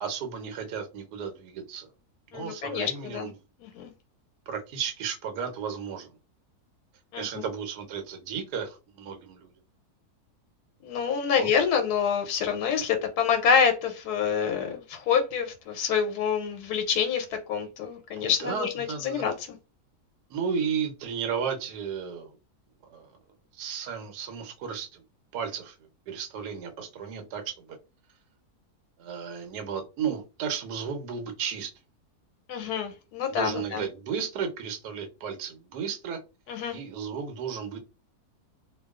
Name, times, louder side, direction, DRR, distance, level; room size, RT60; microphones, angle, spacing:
voice 1, 0.0-1.9 2.3-3.3 4.5-6.1 7.2-9.5 11.3-11.5 18.2-19.2 20.3-22.4 22.8-23.1 23.5-25.0 25.3-25.8 26.1-27.8 29.0-31.7 33.3-36.2 36.7-37.8, right 7 dB, 85° right, 5 dB, 1.2 m, -34 dB
voice 2, 2.3-3.3 3.6-3.9 7.1-7.4 10.8-19.6 32.5-33.8 36.5-36.8, left 7 dB, 85° left, 5 dB, 1.1 m, -27 dB
2.5 x 2.3 x 2.3 m, 0.30 s
omnidirectional pair, 1.7 m